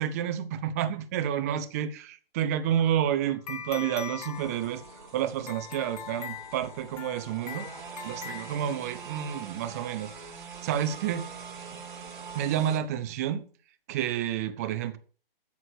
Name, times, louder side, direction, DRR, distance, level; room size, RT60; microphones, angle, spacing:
voice 1, 0.0-7.7 8.0-10.3 10.6-11.3 12.3-13.4 13.9-15.0, right 10 dB, 15° right, 0.8 m, -30 dB
sound 1, 2.7-9.2, left 9 dB, 40° left, 1.7 m, -43 dB
sound 2, 4.3-12.8, right 6 dB, 50° right, 4.3 m, -44 dB
13.0 x 7.9 x 6.4 m
hypercardioid pair, 165°, 30 cm